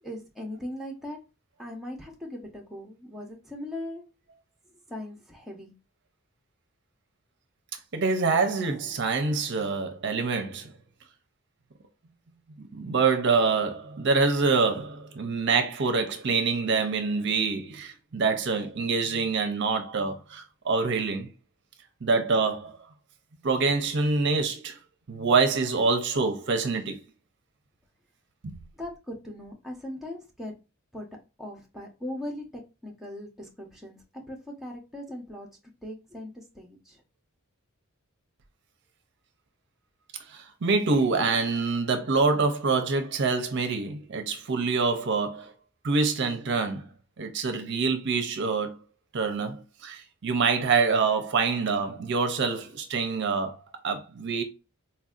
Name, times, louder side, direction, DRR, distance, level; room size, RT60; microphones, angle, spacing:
voice 1, 0.0-1.2 1.6-4.1 4.9-5.7 28.8-30.5 30.9-31.1 31.4-35.5 35.8-37.0, left 1 dB, ahead, 0.7 m, -39 dB
voice 2, 7.9-10.7 12.6-21.3 22.0-22.8 23.4-24.8 25.1-27.0 28.4-28.6 40.3-45.5 45.8-46.9 47.2-48.8 49.1-53.6 53.8-54.4, right 4 dB, 50° right, 0.6 m, -26 dB
4.2 x 2.6 x 2.4 m
head